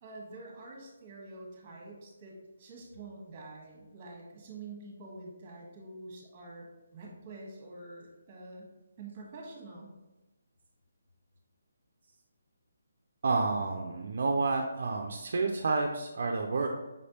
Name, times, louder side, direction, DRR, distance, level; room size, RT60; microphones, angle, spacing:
voice 1, 0.0-8.7 9.0-9.9, right 2 dB, 25° right, -1 dB, 1.3 m, -47 dB
voice 2, 13.2-16.7, right 3 dB, 55° right, 1 dB, 0.4 m, -29 dB
5.2 x 3.3 x 2.8 m, 1.0 s
hypercardioid pair, 160°, 0 cm